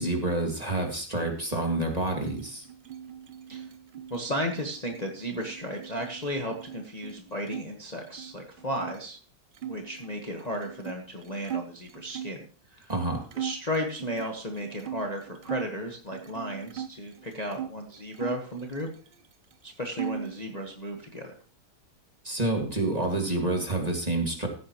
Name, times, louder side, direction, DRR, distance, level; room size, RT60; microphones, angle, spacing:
voice 1, 0.0-2.7 12.9-13.2 22.2-24.5, right 2 dB, 20° right, 2 dB, 2.2 m, -28 dB
sound 1, 1.9-7.7 8.0-9.0 9.5-12.4 12.9-13.0 13.3-15.7 16.1-17.7 18.1-19.3 19.5-20.4, right 9 dB, 75° right, 0.4 m, -39 dB
voice 2, 4.1-9.2 9.6-12.9 13.4-18.9 19.6-21.3, equal, 25° left, 2 dB, 1.4 m, -34 dB
15.5 x 9.4 x 3.0 m, 0.42 s
omnidirectional pair, 1.9 m